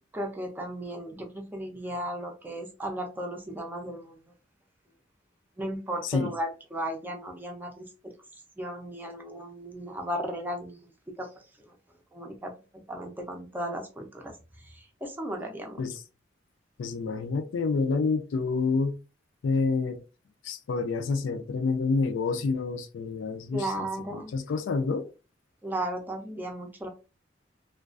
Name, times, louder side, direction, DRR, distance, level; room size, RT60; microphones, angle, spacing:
voice 1, 0.1-4.2 5.6-8.1 8.6-10.8 11.2-11.3 12.1-14.3 14.6-15.8 23.5-24.3 25.6-26.9, right 1 dB, 10° right, 0.4 m, -35 dB
voice 2, 6.0-6.3 15.8-16.0 16.8-18.9 19.4-20.0 20.4-23.9 24.1-25.1, left 4 dB, 85° left, 0.4 m, -28 dB
2.4 x 2.2 x 2.4 m
head